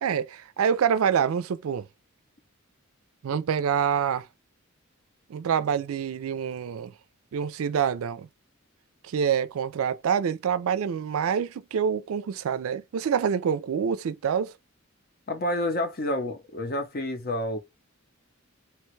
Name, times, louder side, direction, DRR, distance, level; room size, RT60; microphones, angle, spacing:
voice 1, 0.0-1.9 3.2-4.3 5.3-6.9 7.3-8.3 9.0-14.5, right 7 dB, 85° right, 0.4 m, -26 dB
voice 2, 15.3-17.6, left 1 dB, 45° left, 0.7 m, -29 dB
3.0 x 2.2 x 3.0 m
head